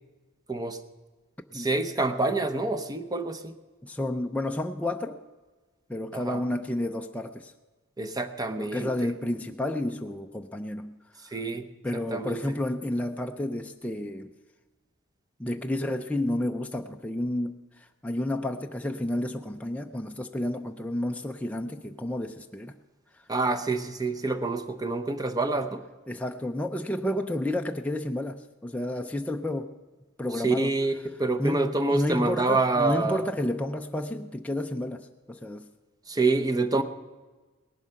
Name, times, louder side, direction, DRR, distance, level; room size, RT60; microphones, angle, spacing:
voice 1, 0.5-0.8 1.5-3.5 6.1-6.4 8.0-9.1 11.2-11.7 12.1-12.4 23.3-25.8 30.4-33.3 36.1-36.8, right 3 dB, 15° right, 10 dB, 0.8 m, -27 dB
voice 2, 3.8-5.2 5.9-7.5 8.6-11.3 11.8-14.3 15.4-22.8 23.1-23.3 26.1-29.8 30.2-30.7 31.4-35.7, left 1 dB, 5° left, 4 dB, 0.4 m, -31 dB
18.5 x 11.5 x 5.7 m, 1.3 s
head